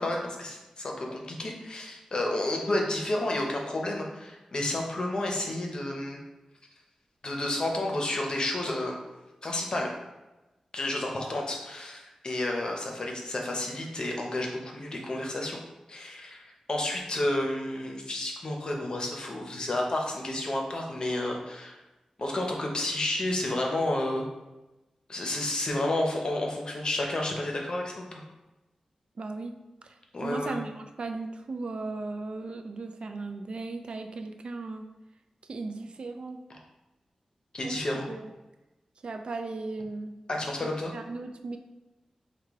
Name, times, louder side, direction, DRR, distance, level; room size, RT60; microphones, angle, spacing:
voice 1, 0.0-6.2 7.2-9.0 9.4-9.9 10.7-15.6 15.9-21.8 22.2-24.2 25.1-28.2 30.1-30.6 37.5-38.1 40.3-40.9, left 1 dB, 45° left, 0 dB, 0.7 m, -31 dB
voice 2, 29.2-29.5 29.8-34.8 35.5-36.4 37.6-37.8 38.1-38.3 39.0-40.2 40.6-41.6, right 3 dB, 55° right, 6 dB, 0.3 m, -37 dB
4.8 x 2.2 x 3.5 m, 1.1 s
wide cardioid pair, 130°, 2 cm